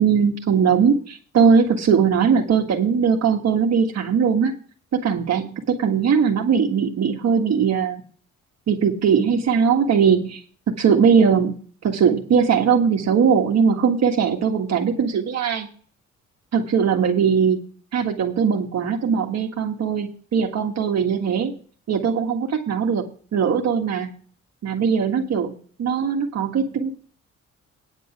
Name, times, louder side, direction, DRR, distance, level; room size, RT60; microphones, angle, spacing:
voice 1, 0.0-4.6 4.9-8.0 8.7-10.4 10.7-11.5 11.8-15.7 16.5-17.6 17.9-21.5 21.9-23.0 23.3-24.1 24.6-25.5 25.8-26.9, right 6 dB, 60° right, 2 dB, 1.7 m, -20 dB
9.8 x 5.4 x 7.6 m, 0.43 s
cardioid pair, 90°, 30 cm